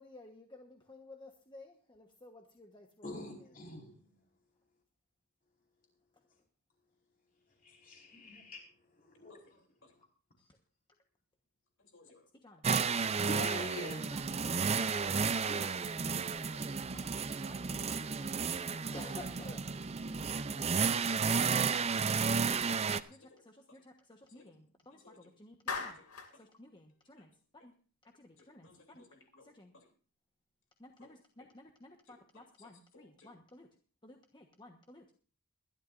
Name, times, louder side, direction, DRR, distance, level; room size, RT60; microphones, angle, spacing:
voice 1, 0.0-3.5 10.4-10.5 12.4-12.6 13.8-14.2 15.6-17.1 17.4-19.7 21.9-26.0 26.3-27.3 27.6-27.7 28.0-29.0 29.4-29.7 30.8-33.7 34.0-35.1, left 2 dB, 20° left, 3 dB, 1.2 m, -55 dB
voice 2, 3.0-3.9 7.6-8.6 8.9-9.6 13.3-14.2 15.0-15.2 15.5-15.6, left 1 dB, 40° left, 0 dB, 4.8 m, -44 dB
voice 3, 11.8-12.2 12.9-13.1 16.1-16.2 16.5-16.7 17.4-17.7 18.7-18.9 23.3-23.8 24.3-24.4 24.9-25.3 25.8-26.5 27.2-27.3 28.4-29.9 31.0-31.1 32.1-33.3, left 3 dB, 60° left, 2 dB, 3.2 m, -62 dB
sound 1, 12.6-23.0, right 5 dB, 30° right, 0.5 m, -32 dB
Clapping, 25.7-26.4, left 4 dB, 85° left, 2.5 m, -38 dB
22.5 x 12.0 x 2.6 m, 0.40 s
head